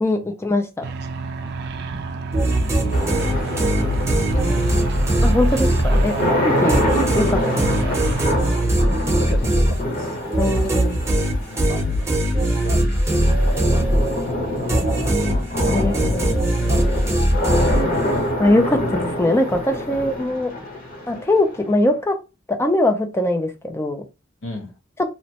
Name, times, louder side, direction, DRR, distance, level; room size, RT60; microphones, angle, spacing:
voice 1, 0.0-0.8 5.2-6.1 6.4-6.9 7.1-7.5 7.9-8.0 10.4-11.0 15.7-16.2 18.4-20.5 21.1-22.2 22.5-24.0, left 1 dB, 15° left, 5 dB, 0.4 m, -21 dB
sound 1, 0.8-8.3, right 4 dB, 55° right, 0.4 m, -29 dB
sound 2, 2.3-6.3 6.7-14.3 14.7-18.2, right 1 dB, 15° right, 0.8 m, -20 dB
voice 2, 2.6-3.8 4.3-4.9 6.1-6.3 9.0-10.2 11.4-12.1 12.4-14.4 15.7-16.3 16.7-17.6 18.1-18.2 19.9-20.0 24.4-24.7, left 2 dB, 75° left, 1 dB, 0.8 m, -36 dB
sound 3, 2.9-21.9, left 1 dB, 45° left, 0.9 m, -26 dB
2.9 x 2.1 x 2.8 m, 0.29 s
head